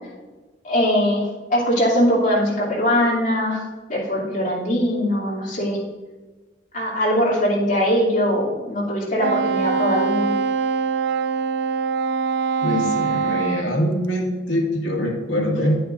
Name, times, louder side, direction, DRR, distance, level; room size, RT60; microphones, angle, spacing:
voice 1, 0.6-3.6 3.9-5.8 6.7-10.3, equal, 45° left, -5 dB, 2.8 m, -21 dB
Wind instrument woodwind instrument, 9.2-13.7, right 6 dB, 65° right, 0.4 m, -23 dB
voice 2, 12.6-15.8, equal, 70° left, -3 dB, 2.0 m, -23 dB
9.6 x 8.6 x 2.6 m, 1.3 s
head